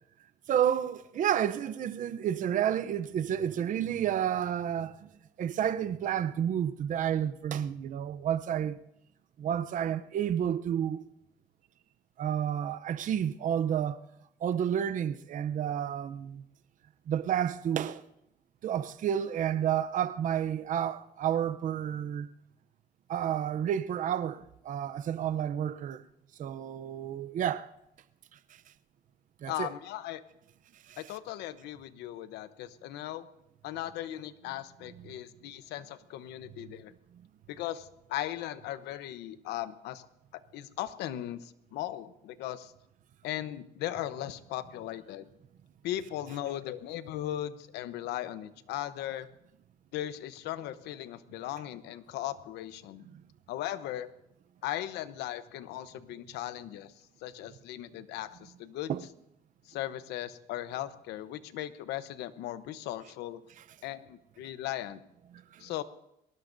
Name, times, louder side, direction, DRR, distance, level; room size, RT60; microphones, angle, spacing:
voice 1, 0.5-5.1 5.4-8.8 9.4-11.1 12.2-14.0 14.4-16.4 17.1-18.0 18.6-22.3 23.1-26.0 26.4-27.7 29.4-29.7 30.9-31.0 58.9-59.0 65.3-65.6, right 9 dB, 50° right, 0.7 m, -30 dB
voice 2, 29.5-30.2 31.0-33.3 33.6-36.9 37.5-40.1 40.3-42.7 43.2-45.3 45.8-49.3 49.9-53.1 53.5-54.1 54.6-56.9 57.2-58.9 59.7-63.4 63.8-65.0 65.6-65.8, left 13 dB, 85° left, 0.9 m, -38 dB
22.5 x 18.5 x 2.7 m
cardioid pair, 110°, 17 cm